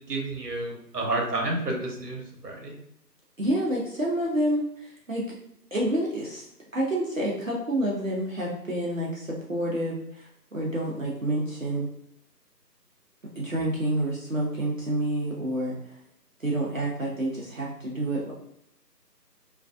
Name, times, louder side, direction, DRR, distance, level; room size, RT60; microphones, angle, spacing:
voice 1, 0.1-2.7, right 2 dB, 70° right, 0 dB, 0.9 m, -30 dB
voice 2, 3.4-5.2 5.7-6.5 6.7-11.9 13.4-15.9 16.4-18.3, right 1 dB, 55° right, -5 dB, 0.6 m, -28 dB
2.4 x 2.3 x 2.3 m, 0.75 s
figure-of-eight pair, 165°, 50 cm